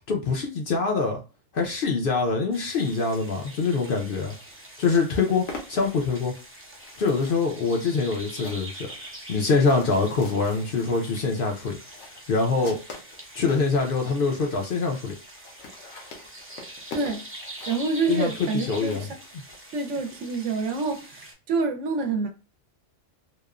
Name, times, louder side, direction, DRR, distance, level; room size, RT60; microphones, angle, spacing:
voice 1, 0.1-1.2 1.5-4.3 4.8-6.3 7.0-8.9 9.3-11.8 12.3-12.8 13.3-15.1 18.1-19.1, left 4 dB, 55° left, 0.7 m, -24 dB
sound 1, 2.5-21.3, right 1 dB, 20° right, 0.4 m, -44 dB
sound 2, 5.5-13.7 14.3-14.4 14.6-14.7 14.9-15.0 15.2-19.6, left 3 dB, 75° left, 1.0 m, -44 dB
voice 2, 16.9-17.2 17.7-19.2 19.7-22.3, right 4 dB, 75° right, 0.9 m, -27 dB
2.9 x 2.1 x 2.3 m
omnidirectional pair, 1.3 m